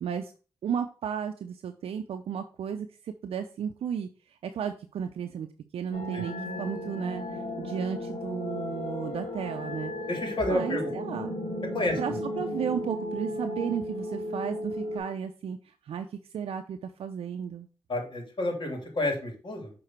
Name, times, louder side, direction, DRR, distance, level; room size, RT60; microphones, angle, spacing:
voice 1, 0.0-0.3 0.6-4.1 4.4-5.5 5.7-9.9 10.5-11.3 12.0-17.7, right 8 dB, 70° right, 6 dB, 0.5 m, -34 dB
sound 1, 5.9-15.0, left 1 dB, 80° left, 1.8 m, -35 dB
voice 2, 10.1-10.9 11.7-12.2 17.9-19.7, left 1 dB, 55° left, 1 dB, 3.0 m, -30 dB
6.4 x 3.8 x 4.5 m, 0.36 s
supercardioid pair, 40°, 10 cm